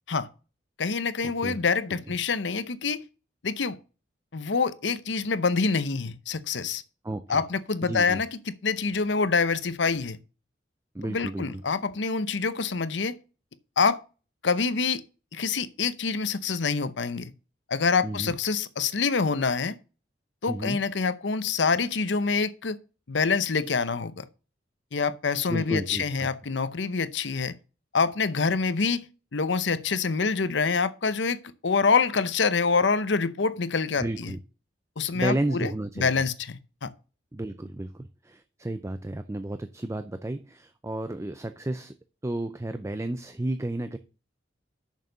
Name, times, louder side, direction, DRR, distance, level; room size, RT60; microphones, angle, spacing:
voice 1, 0.8-3.0 3.4-3.8 4.3-6.8 7.3-10.2 11.1-13.2 13.8-14.0 14.4-15.0 15.3-17.3 17.7-19.8 20.4-22.8 23.1-24.2 24.9-27.5 27.9-29.1 29.3-34.3 35.0-35.7 36.0-36.9, left 4 dB, 70° left, 0.8 m, -26 dB
voice 2, 7.0-7.4 7.8-8.2 10.9-11.4 18.0-18.4 20.5-20.8 25.5-26.3 34.0-34.4 35.1-36.1 37.3-42.0 42.2-44.0, right 1 dB, 15° right, 0.5 m, -32 dB
6.6 x 6.5 x 6.6 m
head